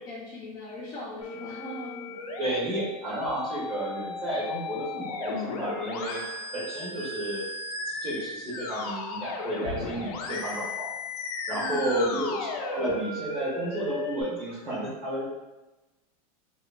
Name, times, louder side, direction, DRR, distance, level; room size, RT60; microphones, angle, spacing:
voice 1, 0.0-2.3 2.7-2.8 11.5-12.4, left 1 dB, 20° left, -8 dB, 0.4 m, -40 dB
Musical instrument, 1.2-14.2, left 3 dB, 85° left, 0.5 m, -35 dB
voice 2, 2.4-6.2 6.5-7.4 7.9-10.9 11.5-12.3 12.7-15.2, right 1 dB, 30° right, -7 dB, 1.1 m, -31 dB
2.9 x 2.2 x 2.4 m, 1.1 s
supercardioid pair, 160°, 19 cm